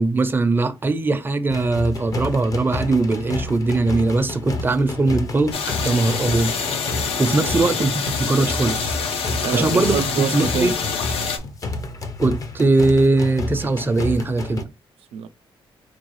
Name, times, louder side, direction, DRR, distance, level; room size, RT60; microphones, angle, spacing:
voice 1, 0.0-5.5 5.8-6.5 7.2-7.9 8.2-9.0 9.5-10.0 10.3-10.8 12.2-14.7, right 2 dB, 20° right, 0.5 m, -20 dB
sound 1, 1.5-14.6, left 3 dB, 35° left, 0.6 m, -30 dB
sound 2, 5.5-11.4, left 5 dB, 75° left, 0.7 m, -26 dB
voice 2, 9.4-10.7 15.1-15.3, right 8 dB, 90° right, 0.4 m, -26 dB
4.6 x 2.3 x 3.1 m
cardioid pair, 125°, 10 cm